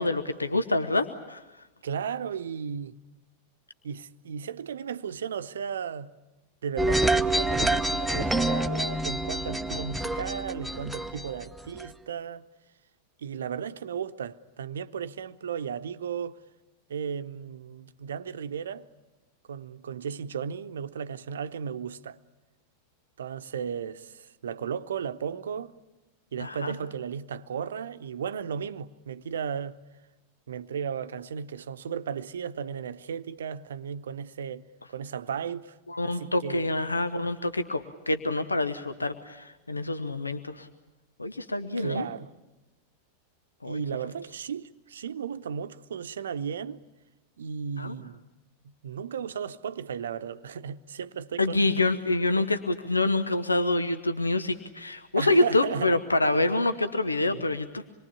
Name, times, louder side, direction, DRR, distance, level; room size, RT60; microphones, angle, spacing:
voice 1, 0.0-1.4 26.4-26.8 35.9-40.7 41.2-42.1 43.6-43.8 47.8-47.9 51.4-57.8, left 2 dB, 80° left, 1.0 m, -26 dB
voice 2, 1.8-3.0 3.8-6.1 6.6-12.4 13.2-16.4 16.9-18.9 19.5-22.2 23.2-25.7 26.3-29.8 30.5-34.6 34.9-35.8 36.0-36.7 41.8-42.3 43.7-46.8 47.4-48.2 48.8-51.7 55.2-56.0 57.3-57.5, right 7 dB, 65° right, 0.8 m, -35 dB
sound 1, 6.8-11.9, right 1 dB, 5° right, 0.9 m, -27 dB
26.5 x 22.5 x 8.5 m
figure-of-eight pair, 90°, 0 cm